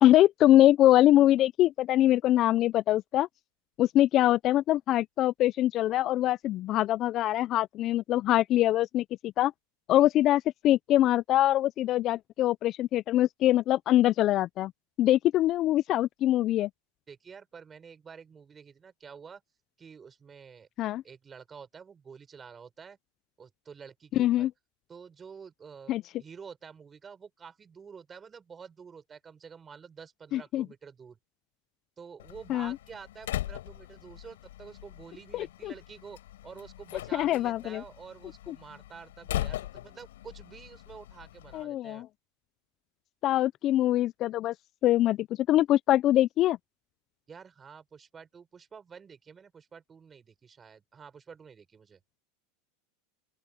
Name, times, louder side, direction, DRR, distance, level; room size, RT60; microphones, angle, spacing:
voice 1, 0.0-3.3 3.8-9.5 9.9-14.7 15.0-16.7 20.8-21.0 24.2-24.5 25.9-26.0 30.3-30.6 32.5-32.7 35.3-35.7 37.1-37.8 38.5-38.6 41.5-42.0 43.2-44.5 44.8-46.6, left 13 dB, 45° left, 0.5 m, -23 dB
voice 2, 17.1-19.4 19.8-20.7 21.0-23.0 23.4-24.5 24.9-31.2 32.0-42.0 47.3-52.0, right 6 dB, 25° right, 6.3 m, -49 dB
Slam, 32.2-41.6, left 14 dB, 80° left, 4.2 m, -40 dB
open air
hypercardioid pair, 105°, 0 cm